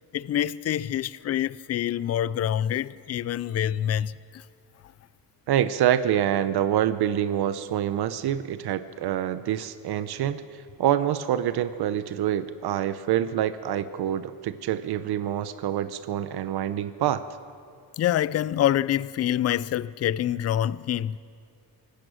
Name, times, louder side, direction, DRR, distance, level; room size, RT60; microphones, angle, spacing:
voice 1, 0.1-4.1 18.0-21.2, left 11 dB, 40° left, 0.4 m, -26 dB
voice 2, 5.5-17.3, right 11 dB, 70° right, 0.8 m, -26 dB
24.5 x 19.0 x 6.4 m
cardioid pair, 150°, 40 cm